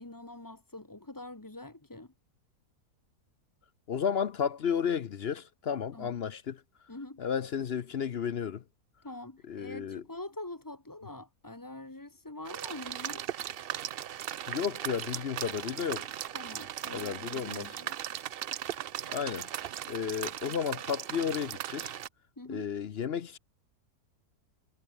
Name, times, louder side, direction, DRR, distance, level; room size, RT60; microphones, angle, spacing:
voice 1, 0.0-2.1 5.9-6.2 6.9-7.2 9.0-13.2 16.3-18.0 22.4-22.7, left 2 dB, 15° left, 1.3 m, -44 dB
voice 2, 3.9-6.6 7.2-8.6 9.5-10.0 14.5-16.1 16.9-17.7 19.1-19.5 19.9-21.9 22.5-23.4, left 7 dB, 50° left, 0.8 m, -33 dB
sound 1, 12.4-22.1, right 10 dB, 80° right, 0.5 m, -38 dB
omnidirectional pair, 1.7 m